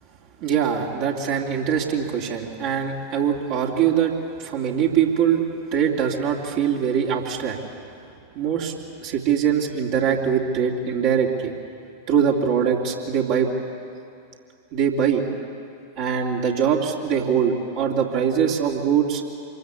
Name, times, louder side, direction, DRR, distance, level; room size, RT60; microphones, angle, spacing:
voice 1, 0.4-5.4 5.7-7.6 8.3-8.7 9.0-11.5 12.1-13.5 14.7-15.3 16.0-19.2, right 8 dB, 45° right, -1 dB, 2.8 m, -22 dB
26.5 x 22.0 x 8.3 m, 2.5 s
figure-of-eight pair, 90°, 0 cm